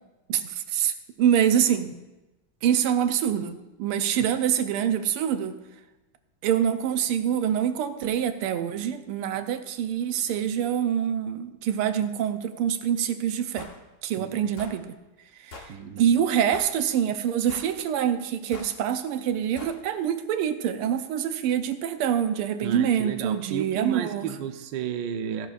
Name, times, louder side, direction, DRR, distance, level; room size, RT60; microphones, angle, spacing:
voice 1, 0.3-1.9 2.6-5.6 6.4-13.7 14.0-14.9 15.4-15.7 16.0-24.2, right 9 dB, 80° right, 9 dB, 1.6 m, -25 dB
sound 1, 13.6-13.8 14.6-14.8 15.5-15.7 16.5-16.8 17.5-17.8 18.5-18.7 19.6-19.8, left 3 dB, 45° left, 1.1 m, -42 dB
voice 2, 14.2-14.5 15.7-16.1 22.6-25.5, right 8 dB, 65° right, 7 dB, 1.3 m, -32 dB
16.0 x 11.5 x 2.5 m, 1.0 s
omnidirectional pair, 2.4 m